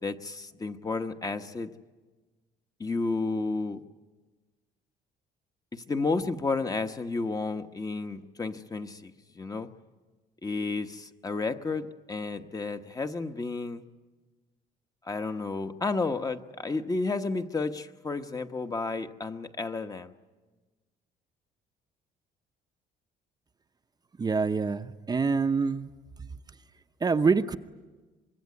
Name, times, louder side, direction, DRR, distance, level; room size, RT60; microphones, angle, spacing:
voice 1, 0.0-1.7 2.8-3.8 5.7-9.7 10.4-13.8 15.0-20.1, left 3 dB, 20° left, 8 dB, 1.1 m, -32 dB
voice 2, 24.2-25.9 27.0-27.6, right 4 dB, 25° right, 8 dB, 0.8 m, -25 dB
25.0 x 22.5 x 9.6 m, 1.3 s
cardioid pair, 110°, 17 cm